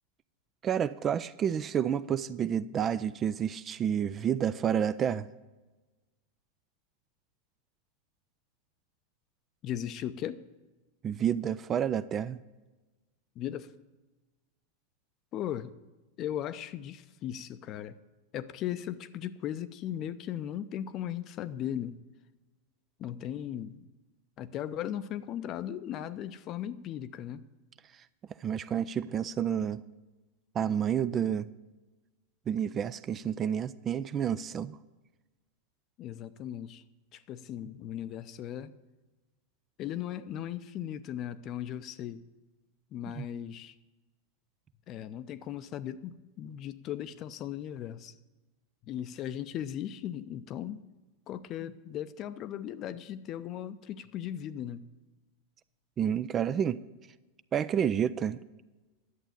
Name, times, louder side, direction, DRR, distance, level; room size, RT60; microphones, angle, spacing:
voice 1, 0.6-5.3 11.0-12.4 28.4-29.8 30.5-31.5 32.5-34.8 43.2-43.3 56.0-56.8 57.5-58.4, right 9 dB, 25° right, 15 dB, 0.4 m, -29 dB
voice 2, 9.6-10.4 13.4-13.7 15.3-15.7 16.2-18.0 18.3-22.0 23.0-23.9 24.4-27.4 36.0-36.8 37.1-38.7 39.8-42.2 42.9-43.7 44.9-48.1 48.9-50.8 51.3-54.8, left 10 dB, 35° left, 14 dB, 0.6 m, -37 dB
11.0 x 7.9 x 8.6 m, 1.2 s
figure-of-eight pair, 90°, 0 cm